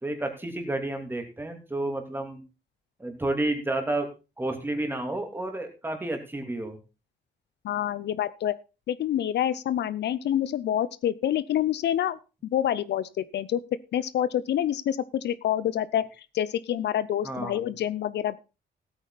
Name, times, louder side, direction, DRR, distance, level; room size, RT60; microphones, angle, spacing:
voice 1, 0.0-2.4 3.0-4.1 4.4-6.8 17.2-17.6, right 2 dB, 10° right, 4 dB, 2.9 m, -30 dB
voice 2, 7.6-8.6 8.9-13.6 13.9-18.4, left 11 dB, 65° left, 16 dB, 0.7 m, -27 dB
16.0 x 8.9 x 4.1 m, 0.31 s
cardioid pair, 140°, 19 cm